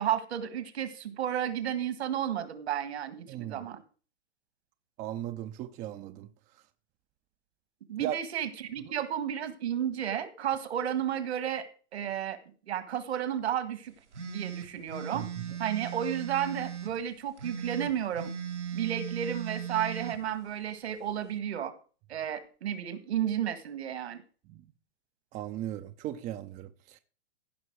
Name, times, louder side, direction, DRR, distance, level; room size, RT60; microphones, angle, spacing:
voice 1, 0.0-3.8 7.9-11.7 11.9-12.4 12.7-13.9 14.2-15.3 15.6-18.3 18.7-21.7 22.1-24.2, right 10 dB, 65° right, 1.8 m, -32 dB
voice 2, 3.3-3.7 5.0-6.3 8.0-8.2 15.1-15.5 24.5-24.6 25.3-27.0, right 12 dB, 20° right, 0.5 m, -37 dB
sound 1, 14.1-16.9 17.4-20.2, right 8 dB, 90° right, 1.8 m, -38 dB
15.5 x 5.4 x 4.7 m
hypercardioid pair, 115°, 34 cm